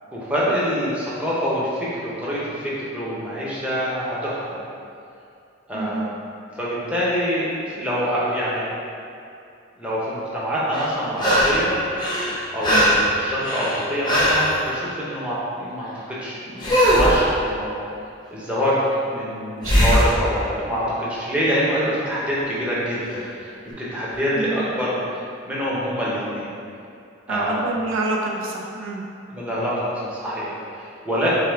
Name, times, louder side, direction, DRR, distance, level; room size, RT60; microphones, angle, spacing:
voice 1, 0.1-4.7 5.7-6.1 6.6-8.7 9.8-11.7 12.5-17.7 18.3-23.2 23.6-26.5 27.3-27.7 29.3-31.3, equal, 5° right, -9 dB, 0.8 m, -25 dB
voice 2, 5.7-6.1 12.7-12.9 19.6-20.0 24.3-24.7 27.3-29.0, right 2 dB, 90° right, -1 dB, 0.6 m, -27 dB
sound 1, 10.7-11.7 12.0-14.5 16.6-17.2 19.6-20.1 23.1-23.2, equal, 20° left, 0.6 m, -19 dB
6.5 x 2.3 x 3.5 m, 2.5 s
head